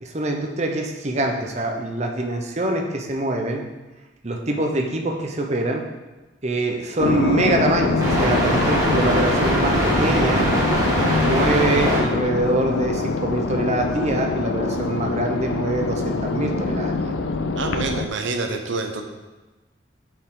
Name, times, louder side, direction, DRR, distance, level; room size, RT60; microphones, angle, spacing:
voice 1, 0.0-3.6 4.2-5.8 6.4-10.5 11.2-17.1, right 2 dB, 35° right, 2 dB, 0.7 m, -24 dB
sound 1, 7.0-18.1, left 3 dB, 75° left, 0.5 m, -24 dB
sound 2, 7.0-12.0, right 1 dB, 20° right, 1.4 m, -22 dB
voice 2, 17.6-19.0, right 3 dB, 80° right, 4 dB, 0.8 m, -27 dB
7.7 x 4.7 x 3.8 m, 1.2 s
head